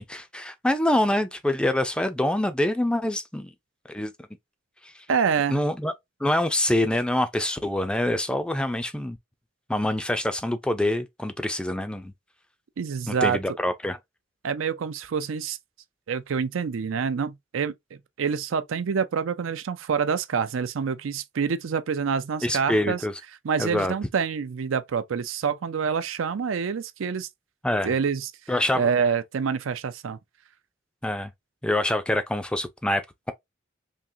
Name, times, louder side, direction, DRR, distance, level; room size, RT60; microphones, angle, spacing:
voice 1, 0.0-3.5 3.9-4.1 4.8-5.0 5.5-5.9 6.2-9.2 9.7-12.1 13.1-14.0 22.4-23.1 23.6-23.9 27.6-27.9 28.5-28.9 31.0-31.3 31.6-33.3, left 1 dB, 5° left, 0.4 m, -25 dB
voice 2, 5.1-5.6 12.8-13.4 14.4-15.6 16.1-23.0 23.4-27.3 27.8-28.3 28.7-30.2, right 6 dB, 85° right, 0.5 m, -27 dB
3.6 x 2.8 x 2.7 m
head